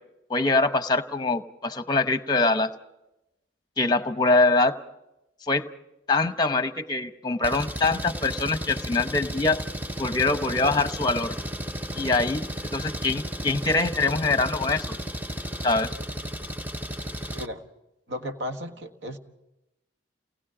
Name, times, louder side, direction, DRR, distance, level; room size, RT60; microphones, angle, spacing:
voice 1, 0.3-2.7 3.8-4.8 5.4-5.7 6.1-9.6 10.0-11.4 11.9-12.5 12.7-14.9 15.6-16.0, left 3 dB, 20° left, 10 dB, 0.8 m, -24 dB
Engine, 7.4-17.5, equal, 10° right, 0.6 m, -34 dB
voice 2, 18.1-19.2, equal, 70° right, 6 dB, 1.6 m, -34 dB
29.5 x 19.5 x 5.0 m, 0.92 s
head